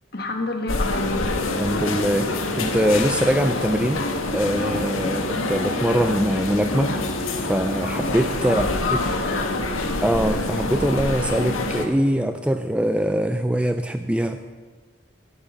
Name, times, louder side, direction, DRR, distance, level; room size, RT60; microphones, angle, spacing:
voice 1, 0.1-1.5 5.1-5.3 8.5-9.7, left 3 dB, 50° left, 3 dB, 1.7 m, -29 dB
sound 1, 0.7-11.9, left 2 dB, 90° left, 1.4 m, -26 dB
voice 2, 1.6-4.0 4.3-7.0 7.4-8.7 10.0-14.4, equal, 5° right, 8 dB, 0.4 m, -23 dB
11.5 x 7.1 x 9.1 m, 1.4 s
head